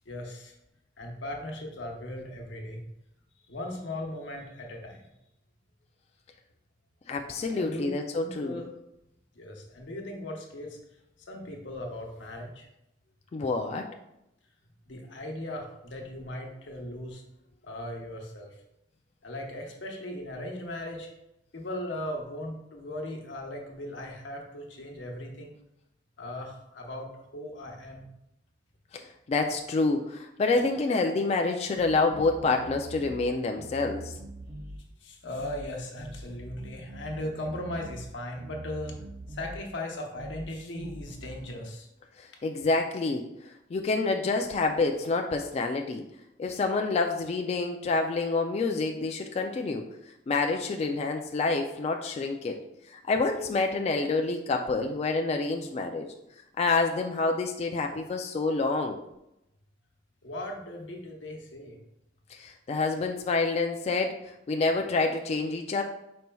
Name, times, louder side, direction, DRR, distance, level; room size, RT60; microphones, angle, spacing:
voice 1, 0.1-0.5 1.0-2.8 3.5-5.0 7.5-7.9 8.2-8.7 9.3-10.8 11.3-12.7 14.9-17.2 17.6-18.5 19.2-21.1 21.5-25.5 26.2-28.0 35.0-39.0 39.3-41.9 60.2-61.8, left 1 dB, 90° left, 1 dB, 0.9 m, -38 dB
voice 2, 7.1-8.6 13.3-13.9 28.9-34.1 42.2-43.2 43.7-46.0 46.4-49.8 50.3-52.6 52.9-56.1 56.6-59.0 62.3-64.2 64.5-65.8, left 3 dB, 35° left, 3 dB, 0.3 m, -27 dB
sound 1, 31.8-33.3 33.6-34.8 35.4-35.7 36.0-38.1 38.4-39.6 40.2-40.5 40.8-41.4, right 2 dB, 60° right, 0.6 m, -43 dB
5.3 x 4.3 x 2.3 m, 0.86 s
head